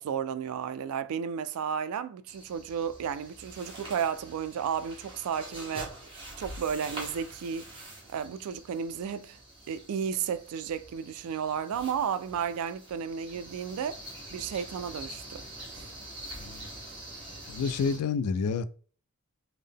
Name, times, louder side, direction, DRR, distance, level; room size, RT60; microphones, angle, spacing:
voice 1, 0.0-5.9 6.4-7.6 8.1-9.4 9.7-14.0 14.3-15.4 15.7-15.9, right 7 dB, 75° right, 0.3 m, -33 dB
sound 1, 2.3-18.0, right 1 dB, 25° right, 1.3 m, -45 dB
voice 2, 17.5-18.7, left 5 dB, 80° left, 0.3 m, -29 dB
3.6 x 2.1 x 3.5 m
head